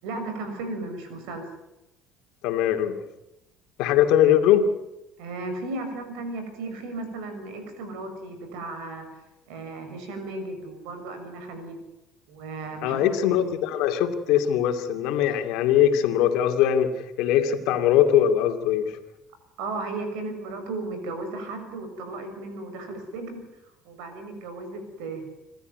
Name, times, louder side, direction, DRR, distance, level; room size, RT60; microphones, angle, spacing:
voice 1, 0.0-1.5 5.2-9.2 9.5-11.8 12.3-13.6 19.6-23.4 23.8-25.2, right 2 dB, 85° right, 7 dB, 6.7 m, -35 dB
voice 2, 2.4-3.0 3.8-4.7 12.8-16.9 17.2-18.9, left 10 dB, 80° left, 6 dB, 2.6 m, -21 dB
27.0 x 13.0 x 9.4 m, 0.91 s
supercardioid pair, 95°, 0 cm